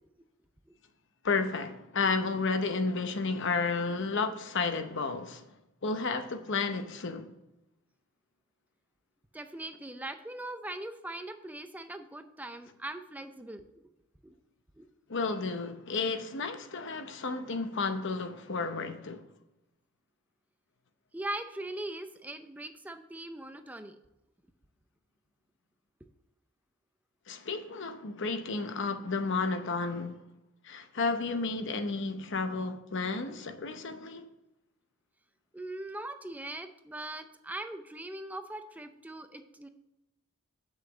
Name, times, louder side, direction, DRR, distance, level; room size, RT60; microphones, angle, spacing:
voice 1, 1.2-5.5 5.8-7.3 15.1-19.2 27.3-30.2 30.6-34.3, left 4 dB, 60° left, 0.8 m, -32 dB
voice 2, 9.3-13.8 14.2-14.3 14.8-14.9 21.1-24.0 35.5-39.7, right 1 dB, 10° right, 0.5 m, -41 dB
8.1 x 6.4 x 4.9 m
head